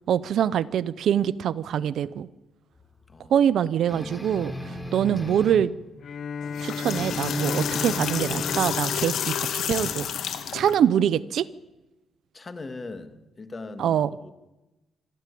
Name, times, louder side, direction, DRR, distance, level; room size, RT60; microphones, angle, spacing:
voice 1, 0.1-2.3 3.3-5.7 6.6-10.1 10.5-11.5 13.8-14.1, right 9 dB, 70° right, 17 dB, 0.7 m, -24 dB
sound 1, 3.9-5.7 6.8-8.8, left 1 dB, 10° left, 3.1 m, -36 dB
Bowed string instrument, 6.0-10.4, left 5 dB, 55° left, 0.7 m, -34 dB
sound 2, 6.4-10.7, left 8 dB, 75° left, 2.1 m, -30 dB
voice 2, 12.3-14.3, left 3 dB, 30° left, 8 dB, 2.2 m, -40 dB
25.0 x 14.0 x 8.5 m, 1.1 s
cardioid pair, 90°, 0 cm